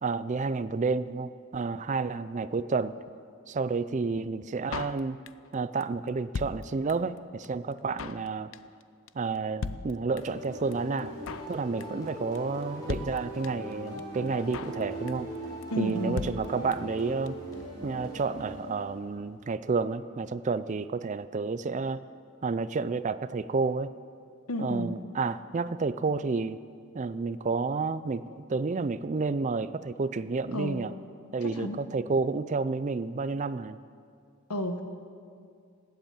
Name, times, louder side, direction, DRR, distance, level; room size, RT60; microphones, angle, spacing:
voice 1, 0.0-3.0 3.5-5.2 5.5-8.5 9.1-11.2 11.5-15.3 15.8-17.4 17.8-22.0 22.4-23.9 24.6-26.6 26.9-30.9 31.3-33.8, right 4 dB, 35° right, 15 dB, 0.4 m, -30 dB
Drum kit, 4.7-5.5 5.8-5.9 6.1-7.2 7.4-7.5 7.7-8.3 8.5-8.8 9.1-9.2 9.3-9.4 9.6-10.4 10.7-10.8 11.0-11.5 11.8-12.1 12.3-12.4 12.6-12.7 12.9-13.7 14.0-14.1 14.3-14.8 15.1-15.4 15.6-15.7 15.9-16.0 16.2-17.0 17.3-17.4 17.5-17.6, left 4 dB, 60° left, 0.5 m, -37 dB
sound 1, 10.2-19.1, equal, 15° left, 5.4 m, -40 dB
voice 2, 15.7-16.2 24.5-24.9 30.5-30.8 31.4-31.8 34.5-34.8, left 1 dB, 85° left, 7 dB, 1.4 m, -32 dB
19.0 x 8.2 x 8.8 m, 2.3 s
head